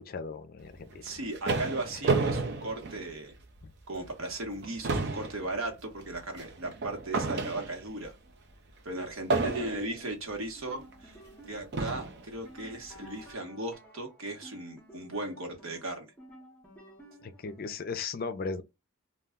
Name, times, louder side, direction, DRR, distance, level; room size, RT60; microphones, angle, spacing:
voice 1, 0.0-1.1 3.6-3.7 17.2-18.6, left 4 dB, 45° left, 0.4 m, -37 dB
sound 1, 0.9-3.6 4.0-4.2 4.5-8.0 9.3-10.1 10.9-11.0 11.7-12.3, right 3 dB, 55° right, 0.5 m, -31 dB
voice 2, 1.0-3.4 3.9-8.1 8.8-11.2 11.5-16.1, right 2 dB, 80° right, 1.0 m, -37 dB
sound 2, 10.5-17.9, equal, 10° left, 0.7 m, -53 dB
2.3 x 2.2 x 3.5 m
head